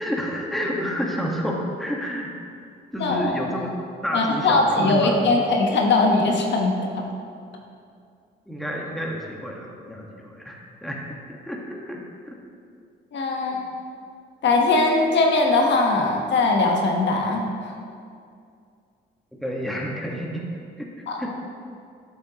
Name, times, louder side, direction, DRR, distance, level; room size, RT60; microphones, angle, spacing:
voice 1, 0.0-2.3 2.9-3.7 4.0-5.2 8.5-12.3 13.5-13.6 19.4-20.5 20.8-20.9 21.2-21.4, equal, ahead, -2 dB, 1.4 m, -30 dB
voice 2, 3.0-3.3 4.1-6.7 13.1-13.6 14.4-17.7 21.1-21.2, left 3 dB, 65° left, 1 dB, 1.2 m, -20 dB
11.5 x 6.8 x 2.9 m, 2.3 s
cardioid pair, 90°, 20 cm